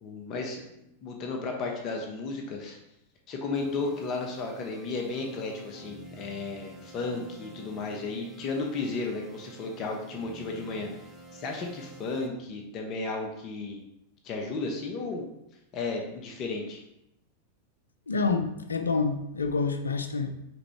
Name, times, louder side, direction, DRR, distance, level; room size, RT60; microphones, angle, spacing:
voice 1, 0.0-2.8 3.3-10.9 11.3-13.8 14.2-15.2 15.7-16.8, left 3 dB, 35° left, 1 dB, 0.7 m, -34 dB
sound 1, 3.5-12.3, right 1 dB, 10° right, 0.8 m, -49 dB
voice 2, 18.1-20.3, left 4 dB, 75° left, 8 dB, 0.4 m, -28 dB
5.0 x 3.5 x 3.1 m, 0.84 s
figure-of-eight pair, 90°, 0 cm